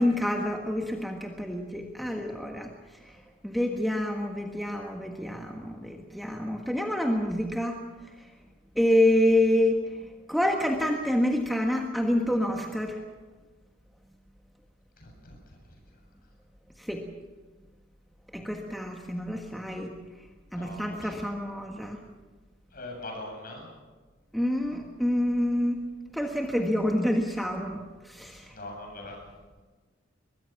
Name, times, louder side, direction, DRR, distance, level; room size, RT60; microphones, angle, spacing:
voice 1, 0.0-2.7 3.0-3.1 3.4-7.8 8.7-9.8 10.3-13.0 16.8-17.1 18.3-19.9 20.5-22.0 24.3-25.8 26.1-28.5, left 1 dB, ahead, 1 dB, 1.5 m, -27 dB
voice 2, 15.0-15.4 20.5-21.1 22.7-23.7 28.5-29.2, left 1 dB, 45° left, 1 dB, 7.9 m, -41 dB
23.0 x 21.5 x 6.0 m, 1.3 s
head